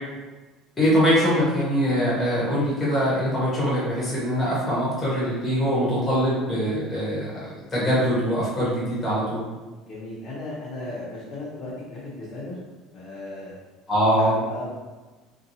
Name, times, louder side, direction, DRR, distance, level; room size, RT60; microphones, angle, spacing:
voice 1, 0.8-9.4 13.9-14.4, equal, 15° left, -8 dB, 0.9 m, -23 dB
voice 2, 9.8-12.6 12.9-13.5 14.1-14.7, left 2 dB, 35° left, -9 dB, 0.6 m, -36 dB
2.7 x 2.2 x 2.6 m, 1.2 s
cardioid pair, 175°, 0 cm